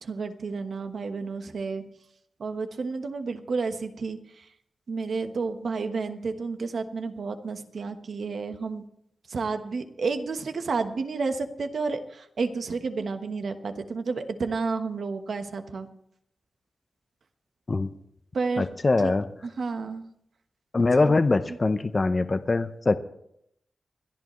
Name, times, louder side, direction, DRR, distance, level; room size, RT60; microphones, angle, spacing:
voice 1, 0.0-1.8 2.4-4.4 4.9-8.8 9.3-15.9 18.3-18.7 19.0-19.1 19.4-20.0 21.0-21.2 21.5-21.6, right 4 dB, 75° right, 7 dB, 1.2 m, -31 dB
voice 2, 18.6-19.3 20.7-23.0, left 3 dB, 40° left, 10 dB, 0.7 m, -23 dB
28.5 x 11.0 x 3.1 m, 0.74 s
cardioid pair, 60°, 0 cm